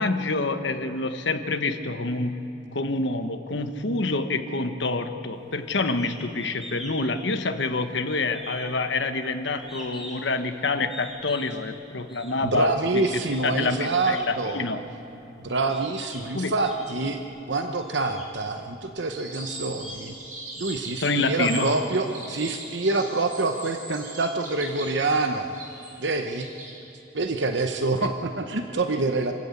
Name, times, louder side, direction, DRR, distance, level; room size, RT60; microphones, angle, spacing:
voice 1, 0.0-13.1 13.4-14.8 16.3-16.5 21.0-21.7, left 3 dB, 65° left, 8 dB, 1.2 m, -27 dB
sound 1, 5.8-6.1 6.4-7.0 7.3-7.9 8.3-10.3 10.9-11.6 12.1-12.3 12.9-14.3 15.1-15.2 15.7-16.2 16.6-17.3 17.8-18.3 18.9-19.0 19.5-21.3, left 1 dB, ahead, 4.2 m, -43 dB
voice 2, 12.4-14.6 15.4-17.2 17.5-20.1 20.6-25.5 26.0-26.5 27.1-29.3, right 3 dB, 65° right, 6 dB, 0.9 m, -26 dB
sound 2, 19.1-26.7, right 3 dB, 45° right, 4.7 m, -40 dB
26.0 x 13.5 x 8.4 m, 2.8 s
head